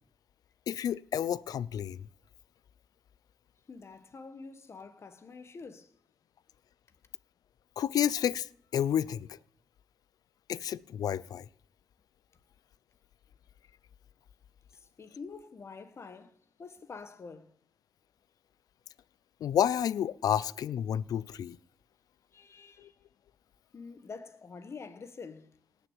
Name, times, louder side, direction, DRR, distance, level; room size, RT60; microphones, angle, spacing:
voice 1, 0.7-2.1 7.8-8.5 8.7-9.3 10.5-11.5 19.4-21.6 22.8-22.9, left 9 dB, 75° left, 0.5 m, -30 dB
voice 2, 3.7-5.9 14.7-17.5 22.3-23.0 23.7-25.5, left 4 dB, 45° left, 1.6 m, -47 dB
18.5 x 6.9 x 8.9 m
cardioid pair, 85°, 6 cm